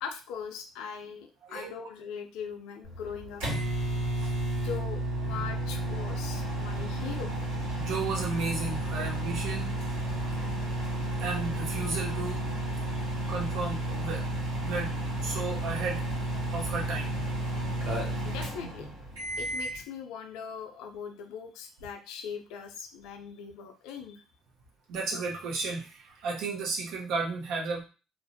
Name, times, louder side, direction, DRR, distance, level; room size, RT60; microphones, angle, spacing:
voice 1, 0.0-3.4 4.6-7.3 12.9-13.3 18.2-18.9 19.4-24.2, left 7 dB, 75° left, 5 dB, 0.4 m, -40 dB
sound 1, 2.8-19.8, right 1 dB, 85° right, 1.4 m, -32 dB
voice 2, 7.7-10.2 11.2-12.4 13.3-14.2 14.6-14.9 15.2-16.0 16.5-17.2 24.9-27.8, right 4 dB, 70° right, -1 dB, 0.7 m, -33 dB
2.4 x 2.1 x 2.6 m, 0.33 s
hypercardioid pair, 60°, 0 cm